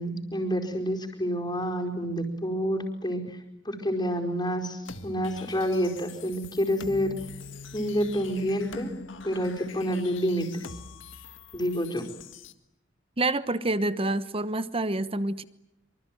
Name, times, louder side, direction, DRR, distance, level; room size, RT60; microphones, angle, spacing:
voice 1, 0.0-3.2 3.6-7.1 7.7-8.9 9.2-10.5 11.5-12.0, equal, 25° left, 2 dB, 4.7 m, -28 dB
sound 1, 4.8-12.5, left 4 dB, 80° left, 1.9 m, -44 dB
voice 2, 13.2-15.4, right 2 dB, 30° right, 14 dB, 1.1 m, -27 dB
25.5 x 24.5 x 9.3 m, 0.83 s
head